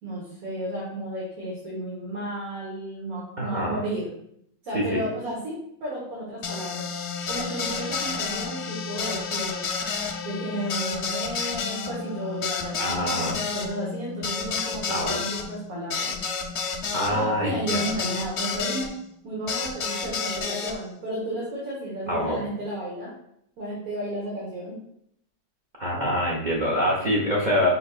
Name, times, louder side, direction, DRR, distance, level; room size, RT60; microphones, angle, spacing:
voice 1, 0.0-4.2 4.6-6.8 7.3-9.6 10.2-16.2 17.1-18.9 19.2-23.1 23.6-24.8, right 1 dB, 60° right, -6 dB, 1.5 m, -33 dB
voice 2, 3.4-3.8 4.7-5.0 12.8-13.4 14.9-15.2 16.9-17.8 22.1-22.4 25.8-27.7, equal, 75° right, -4 dB, 0.4 m, -25 dB
sound 1, 6.4-18.9 19.5-20.7, left 5 dB, 90° left, 0.6 m, -30 dB
5.1 x 3.8 x 2.3 m, 0.73 s
omnidirectional pair, 1.9 m